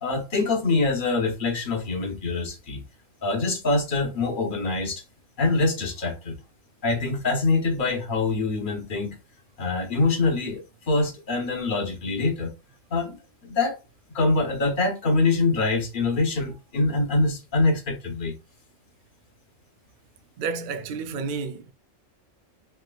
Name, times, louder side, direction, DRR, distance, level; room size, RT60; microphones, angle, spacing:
voice 1, 0.0-2.8 3.2-5.0 5.4-6.4 6.8-9.1 9.6-12.5 12.9-13.2 13.4-13.8 14.1-18.3, left 3 dB, 45° left, 1.0 m, -24 dB
voice 2, 20.4-21.7, right 5 dB, 70° right, 0.5 m, -31 dB
3.3 x 2.8 x 2.3 m
omnidirectional pair, 1.3 m